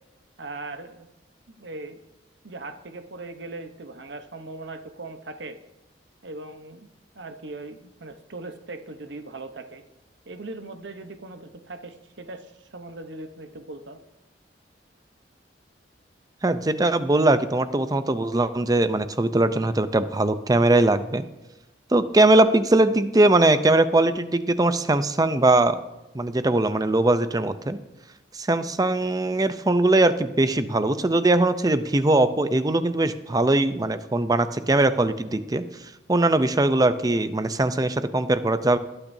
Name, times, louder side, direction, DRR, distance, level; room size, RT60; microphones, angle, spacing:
voice 1, 0.4-1.1 1.5-2.0 2.4-5.6 6.2-6.9 7.1-9.8 10.3-14.0, right 2 dB, 75° right, 8 dB, 0.9 m, -39 dB
voice 2, 16.4-21.2 21.9-25.8 26.1-27.8 28.3-35.6 36.1-38.8, right 2 dB, 20° right, 12 dB, 0.6 m, -21 dB
20.0 x 8.9 x 2.7 m, 1.0 s
head